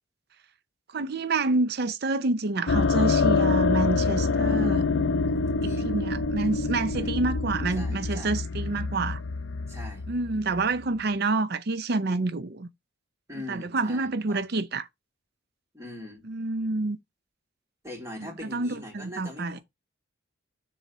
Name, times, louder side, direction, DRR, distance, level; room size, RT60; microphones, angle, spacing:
voice 1, 0.9-4.8 5.6-9.2 10.1-12.7 13.5-14.9 16.3-17.0 18.5-19.6, right 3 dB, 50° right, 0.5 m, -28 dB
sound 1, 2.7-11.0, left 4 dB, 65° left, 0.6 m, -26 dB
voice 2, 5.5-5.9 6.9-7.1 7.7-8.3 9.7-10.0 13.3-14.5 15.7-16.3 17.8-19.6, left 1 dB, 15° right, 3.3 m, -41 dB
7.2 x 3.9 x 5.5 m
head